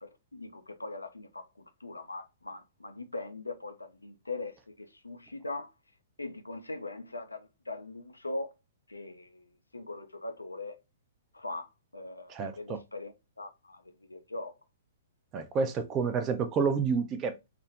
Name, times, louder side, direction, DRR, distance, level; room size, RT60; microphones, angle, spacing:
voice 1, 0.0-5.7 6.2-8.5 8.9-10.8 11.3-14.6, left 2 dB, 85° left, 0.4 m, -41 dB
voice 2, 15.3-17.5, right 5 dB, 25° right, 0.4 m, -29 dB
2.4 x 2.0 x 3.2 m
figure-of-eight pair, 115°, 0 cm